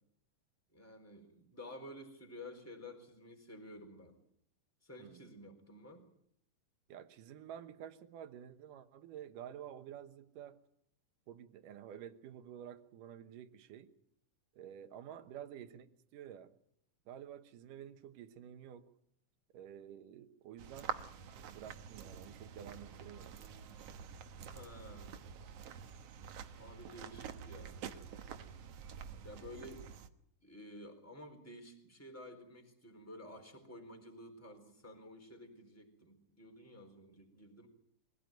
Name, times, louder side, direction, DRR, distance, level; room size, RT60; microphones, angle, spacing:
voice 1, 0.7-4.2 4.8-6.1 15.2-15.4 24.5-25.1 26.6-27.9 29.2-29.9 30.4-37.7, left 1 dB, 5° left, 4 dB, 3.8 m, -52 dB
voice 2, 5.0-5.3 6.9-10.6 11.3-13.9 14.5-15.9 16.1-16.5 17.1-18.9 19.5-20.9 21.5-23.4, right 10 dB, 80° right, 10 dB, 2.7 m, -50 dB
sound 1, 20.6-30.1, right 7 dB, 60° right, 1.8 m, -47 dB
23.5 x 16.5 x 9.1 m, 0.72 s
omnidirectional pair, 3.7 m